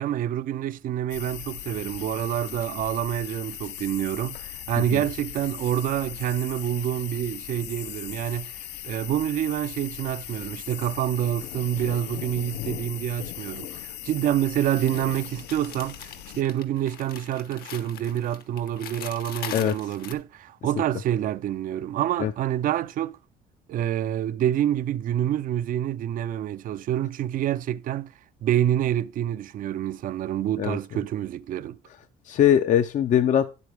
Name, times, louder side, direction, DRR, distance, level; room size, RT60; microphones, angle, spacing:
voice 1, 0.0-23.2 23.7-28.1 28.4-31.8, right 11 dB, 55° right, 0.5 m, -27 dB
sound 1, 1.1-16.4, left 12 dB, 85° left, 0.7 m, -38 dB
sound 2, 14.8-20.1, left 9 dB, 65° left, 1.1 m, -41 dB
voice 2, 32.3-33.6, left 10 dB, 45° left, 0.5 m, -21 dB
9.5 x 8.1 x 3.4 m
cardioid pair, 110°, 17 cm